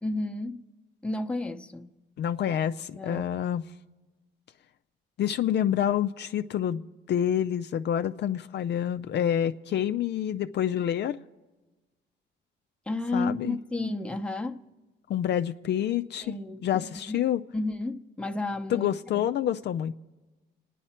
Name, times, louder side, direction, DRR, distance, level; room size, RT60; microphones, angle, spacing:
voice 1, 0.0-0.6 1.0-1.9 2.9-3.2 12.9-14.6 16.2-17.2 17.5-18.9 19.1-19.3, left 2 dB, 5° left, 0.8 m, -32 dB
voice 2, 2.2-3.6 5.2-6.8 7.1-11.2 13.1-13.6 15.1-16.3 16.6-17.4 18.7-19.9, left 10 dB, 60° left, 0.5 m, -27 dB
28.5 x 10.0 x 4.3 m
cardioid pair, 90°, 20 cm